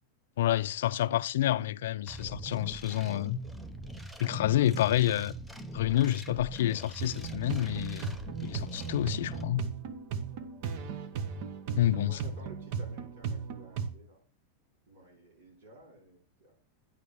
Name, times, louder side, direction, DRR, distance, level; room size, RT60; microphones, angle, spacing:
voice 1, 0.4-3.4 4.2-5.3 5.7-9.7 11.8-12.2, left 13 dB, 75° left, 0.3 m, -28 dB
sound 1, 2.1-9.4, right 2 dB, 5° right, 0.6 m, -42 dB
voice 2, 4.1-4.6 5.3-5.4 10.3-10.4 11.6-14.2 14.9-16.5, right 2 dB, 75° right, 5.0 m, -54 dB
sound 2, 7.0-13.9, right 6 dB, 50° right, 0.9 m, -37 dB
9.6 x 3.3 x 6.9 m
supercardioid pair, 155°, 0 cm